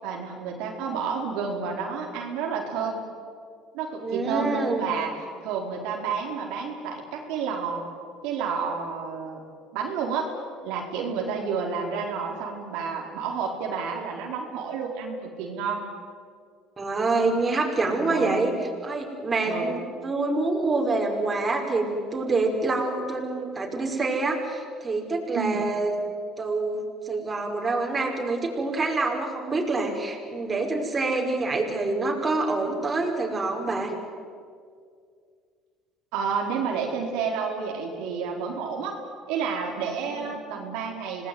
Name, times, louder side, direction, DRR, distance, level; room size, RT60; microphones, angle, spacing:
voice 1, 0.0-3.0 3.7-5.1 5.4-7.8 8.2-9.4 9.7-10.3 10.6-15.8 18.1-18.4 19.4-19.7 25.4-25.7 36.1-39.0 39.3-41.3, right 6 dB, 80° right, 0 dB, 4.2 m, -30 dB
voice 2, 4.0-4.9 16.8-18.5 18.8-25.9 26.4-33.9 40.1-40.4, right 3 dB, 25° right, 1 dB, 5.5 m, -26 dB
27.0 x 19.0 x 9.5 m, 2.2 s
supercardioid pair, 90°, 0 cm